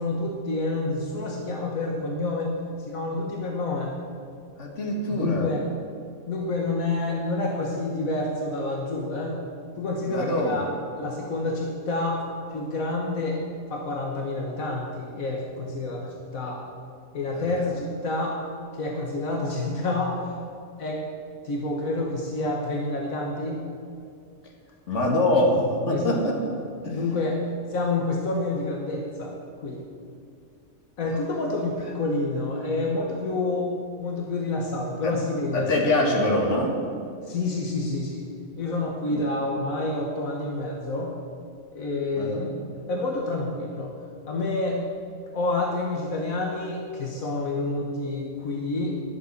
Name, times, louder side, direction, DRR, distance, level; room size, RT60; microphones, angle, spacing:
voice 1, 0.0-2.5 2.9-3.9 5.1-5.7 6.3-9.4 9.8-12.2 12.5-13.4 13.7-16.6 17.1-18.4 18.7-20.3 20.8-21.0 21.4-23.7 25.9-26.2 26.9-29.3 29.6-29.8 31.0-33.7 34.0-35.7 37.2-38.3 38.6-41.2 41.7-42.5 42.9-43.9 44.3-44.8 45.3-49.0, left 2 dB, 85° left, -1 dB, 1.7 m, -28 dB
voice 2, 4.6-5.5 10.1-10.6 17.4-17.5 24.9-26.4 26.8-27.0 35.0-35.1 35.5-36.7 39.1-39.2 42.2-42.5, left 1 dB, 60° left, 0 dB, 2.2 m, -24 dB
11.0 x 7.6 x 8.0 m, 2.3 s
omnidirectional pair, 1.4 m